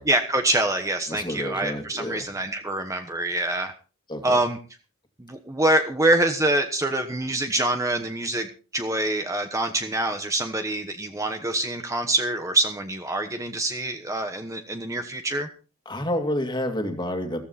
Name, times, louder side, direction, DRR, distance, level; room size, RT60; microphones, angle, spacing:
voice 1, 0.1-3.7 4.2-4.6 5.2-15.5, right 1 dB, 15° right, 6 dB, 1.1 m, -25 dB
voice 2, 1.1-2.3 4.1-4.4 15.9-17.4, left 1 dB, 20° left, 6 dB, 2.3 m, -29 dB
14.5 x 14.5 x 4.2 m, 0.36 s
head